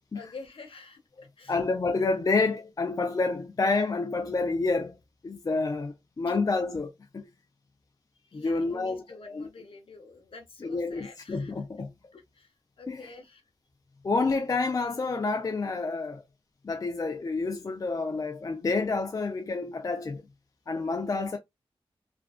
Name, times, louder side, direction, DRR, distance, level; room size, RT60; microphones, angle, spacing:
voice 1, 0.1-1.0 1.4-1.5 8.3-11.5 12.1-12.5 12.8-13.4, left 3 dB, 65° left, 0.7 m, -47 dB
voice 2, 1.5-5.0 5.2-7.3 8.3-9.5 10.6-11.9 12.9-13.1 14.0-16.2 16.6-20.2 20.7-21.4, left 3 dB, 35° left, 0.4 m, -29 dB
2.5 x 2.2 x 2.3 m
wide cardioid pair, 85°, 10 cm